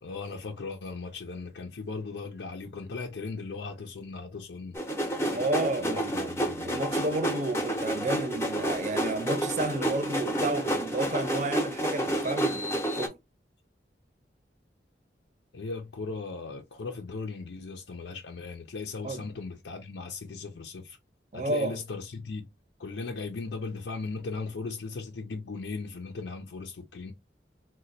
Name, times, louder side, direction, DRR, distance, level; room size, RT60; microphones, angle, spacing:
voice 1, 0.0-4.8 5.8-6.8 15.5-21.0 21.3-22.5 22.8-27.1, left 4 dB, 85° left, 0.5 m, -37 dB
sound 1, 4.7-13.1, right 1 dB, 15° left, 0.6 m, -30 dB
voice 2, 5.3-6.3 6.6-12.6 12.9-13.2 19.0-19.2 21.3-21.8, right 2 dB, 40° right, 0.6 m, -31 dB
4.1 x 2.2 x 2.6 m
head